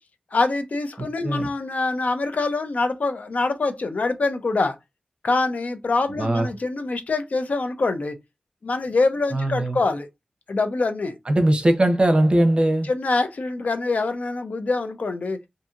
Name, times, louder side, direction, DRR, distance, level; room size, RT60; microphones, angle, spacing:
voice 1, 0.3-4.8 5.2-8.2 8.6-10.1 10.5-11.2 12.9-15.4, left 3 dB, 70° left, 0.4 m, -24 dB
voice 2, 1.0-1.5 6.2-6.5 9.3-9.8 11.3-12.9, right 1 dB, 40° right, 0.7 m, -20 dB
2.7 x 2.6 x 2.4 m
wide cardioid pair, 75°, 3 cm